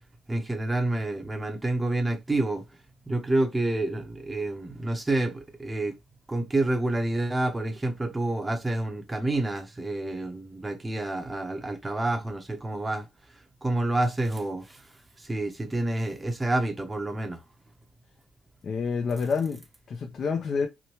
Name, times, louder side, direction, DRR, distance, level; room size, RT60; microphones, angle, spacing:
voice 1, 0.3-2.6 3.1-6.0 6.3-13.1 13.3-17.4, right 2 dB, 15° right, 0.6 m, -28 dB
voice 2, 18.6-20.7, left 5 dB, 50° left, 0.5 m, -28 dB
2.9 x 2.1 x 2.9 m
cardioid pair, 90°, 0 cm